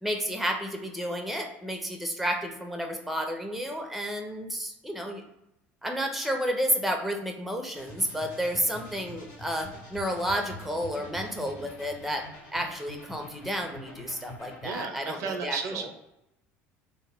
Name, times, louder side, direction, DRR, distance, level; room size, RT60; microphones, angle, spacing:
voice 1, 0.0-5.2 5.8-12.3 12.5-15.9, equal, ahead, 4 dB, 0.5 m, -31 dB
sound 1, 7.7-14.8, left 1 dB, 70° left, 1.1 m, -45 dB
voice 2, 14.6-15.9, right 5 dB, 60° right, 5 dB, 0.4 m, -34 dB
2.1 x 2.0 x 3.4 m, 0.86 s
hypercardioid pair, 85°, 6 cm